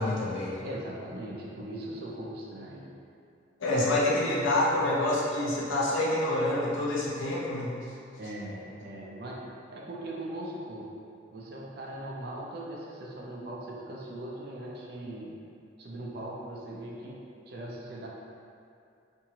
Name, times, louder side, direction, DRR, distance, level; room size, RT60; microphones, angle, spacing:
voice 1, 0.0-0.6 3.6-7.8, left 1 dB, 85° left, -6 dB, 0.6 m, -27 dB
voice 2, 0.6-2.9 3.7-3.9 8.2-9.4 9.7-10.9 11.3-15.3 15.8-17.2 17.5-18.1, right 1 dB, 55° right, -3 dB, 0.4 m, -40 dB
2.7 x 2.6 x 2.8 m, 2.5 s
head